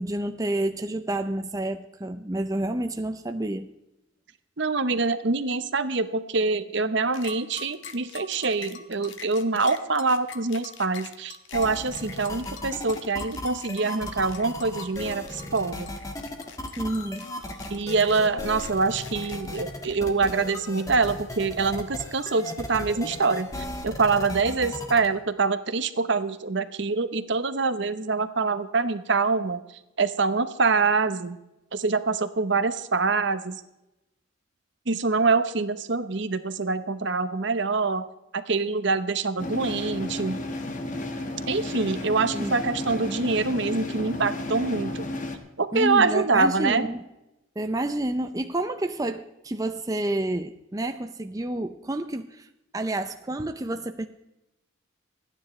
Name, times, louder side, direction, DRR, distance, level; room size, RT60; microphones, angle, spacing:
voice 1, 0.0-3.7 16.8-17.3 42.3-42.5 45.7-47.0 47.6-52.5 52.7-54.1, right 1 dB, 15° right, 8 dB, 0.5 m, -29 dB
voice 2, 4.6-15.9 17.7-29.6 30.0-31.4 31.7-33.6 34.9-38.0 38.3-40.4 41.5-45.0 45.6-46.9, right 4 dB, 60° right, 11 dB, 0.9 m, -25 dB
sound 1, 7.1-20.5, left 6 dB, 65° left, 1.4 m, -44 dB
sound 2, 11.5-25.1, left 1 dB, 15° left, 1.6 m, -36 dB
sound 3, 39.4-45.4, left 1 dB, 40° left, 1.5 m, -33 dB
27.0 x 10.0 x 3.2 m, 0.93 s
head